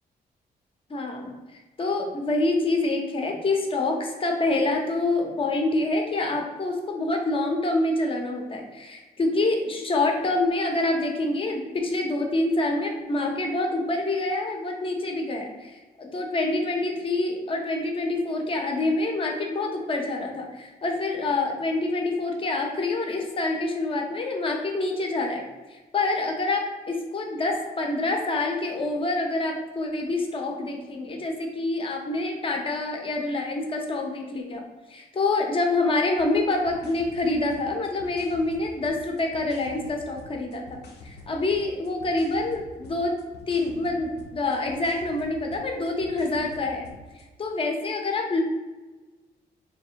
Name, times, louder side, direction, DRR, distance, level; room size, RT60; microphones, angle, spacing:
voice 1, 0.9-1.3 1.8-25.4 25.7-34.6 34.9-46.9 47.4-48.4, left 2 dB, 35° left, 2 dB, 0.8 m, -26 dB
sound 1, 36.2-47.3, left 2 dB, 90° left, 0.8 m, -47 dB
3.3 x 3.0 x 4.5 m, 1.2 s
wide cardioid pair, 145°, 17 cm